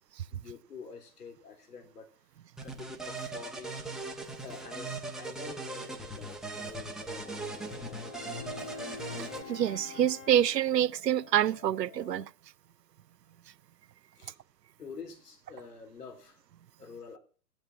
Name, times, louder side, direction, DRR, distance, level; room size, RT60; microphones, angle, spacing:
voice 1, 0.3-2.1 2.6-4.0 4.4-8.3 14.2-14.4 14.8-16.4 16.8-17.2, left 5 dB, 70° left, 3.6 m, -47 dB
sound 1, 2.6-9.4, right 2 dB, ahead, 0.9 m, -39 dB
sound 2, 7.2-12.2, left 6 dB, 50° left, 3.5 m, -46 dB
voice 2, 9.2-12.3, right 11 dB, 85° right, 0.6 m, -27 dB
13.5 x 8.8 x 5.9 m
figure-of-eight pair, 120°, 48 cm